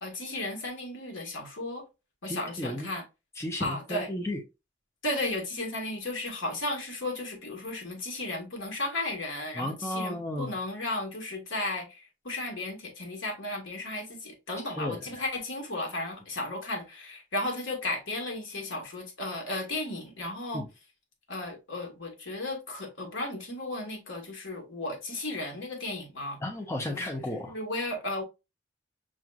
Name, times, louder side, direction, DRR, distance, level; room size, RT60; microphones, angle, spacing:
voice 1, 0.0-1.8 2.2-3.0 3.6-4.1 5.0-20.6 21.3-26.4 26.9-27.0 27.4-28.2, left 2 dB, 90° left, 1.7 m, -34 dB
voice 2, 2.3-2.9 3.4-4.4 9.5-10.5 14.7-15.2 20.5-20.7 26.4-27.6, left 1 dB, 15° left, 0.7 m, -34 dB
6.2 x 3.0 x 2.4 m
head